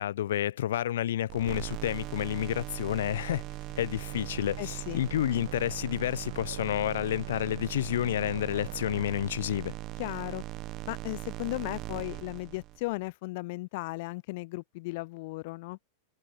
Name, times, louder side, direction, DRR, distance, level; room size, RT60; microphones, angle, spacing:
voice 1, 0.0-3.4 3.8-9.7, left 12 dB, 85° left, 1.2 m, -30 dB
sound 1, 1.3-13.0, right 17 dB, 25° right, 0.9 m, -40 dB
sound 2, 4.0-9.1, right 12 dB, 85° right, 1.6 m, -47 dB
voice 2, 4.6-5.0 10.0-10.4 10.9-15.8, left 23 dB, 45° left, 1.4 m, -36 dB
supercardioid pair, 175°, 0 cm